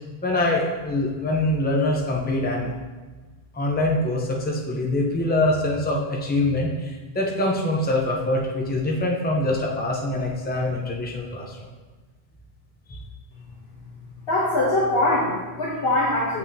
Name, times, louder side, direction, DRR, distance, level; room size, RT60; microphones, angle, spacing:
voice 1, 0.2-2.7 3.5-11.6 12.9-13.0, left 1 dB, 10° left, -1 dB, 0.7 m, -24 dB
voice 2, 14.2-16.4, left 1 dB, 65° left, -6 dB, 1.3 m, -22 dB
7.2 x 6.0 x 2.8 m, 1.3 s
omnidirectional pair, 1.1 m